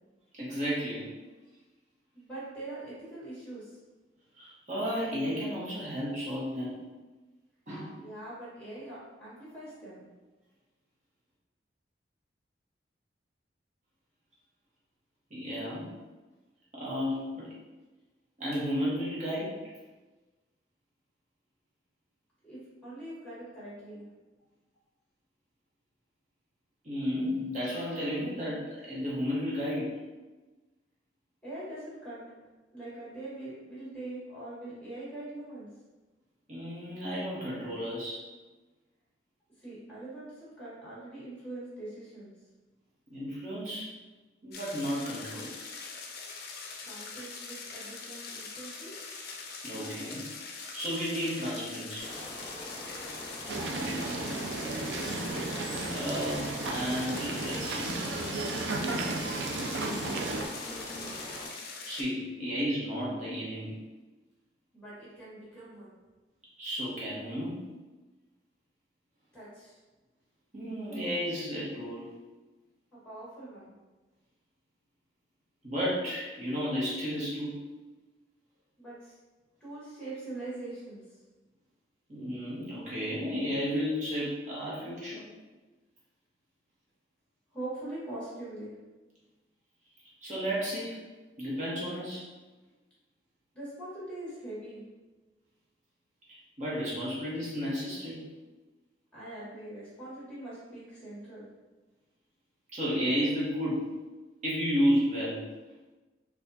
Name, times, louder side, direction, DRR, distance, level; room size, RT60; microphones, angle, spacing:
voice 1, 0.3-1.1 4.4-6.8 7.7-8.0 15.3-15.9 16.7-17.5 18.4-19.6 26.8-29.9 36.5-38.3 43.1-43.9 44.4-45.5 49.6-50.3 50.7-52.1 55.9-57.9 61.9-63.7 66.6-67.7 70.5-72.0 75.6-77.5 82.1-85.2 90.2-91.0 91.4-92.3 96.3-98.2 102.7-104.0 104.4-105.5, equal, 40° right, -7 dB, 1.1 m, -32 dB
voice 2, 2.1-3.8 8.0-10.0 22.4-24.0 31.4-32.2 32.7-35.7 39.6-42.3 46.8-48.9 53.5-55.2 59.3-61.1 64.7-65.9 69.3-69.8 72.9-73.7 78.8-79.1 79.6-81.0 87.5-88.7 93.5-94.8 99.1-101.5, right 2 dB, 5° left, -9 dB, 1.5 m, -43 dB
sound 1, 44.5-62.0, left 4 dB, 55° left, 0.4 m, -43 dB
sound 2, 52.0-61.5, left 1 dB, 25° left, 0.8 m, -43 dB
sound 3, 53.5-60.5, right 3 dB, 80° right, 0.4 m, -34 dB
4.1 x 2.4 x 2.7 m, 1.2 s
head